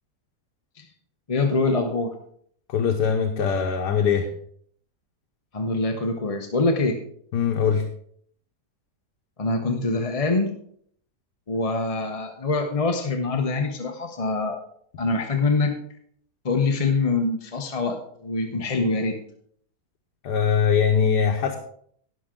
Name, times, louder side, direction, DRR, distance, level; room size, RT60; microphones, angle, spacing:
voice 1, 1.3-2.1 5.5-7.0 9.4-10.5 11.5-14.6 15.0-15.8 16.4-19.2, left 3 dB, 30° left, 4 dB, 0.8 m, -24 dB
voice 2, 2.7-4.3 7.3-7.8 20.2-21.6, left 7 dB, 90° left, 3 dB, 1.6 m, -21 dB
18.0 x 6.1 x 3.8 m, 0.63 s
omnidirectional pair, 1.7 m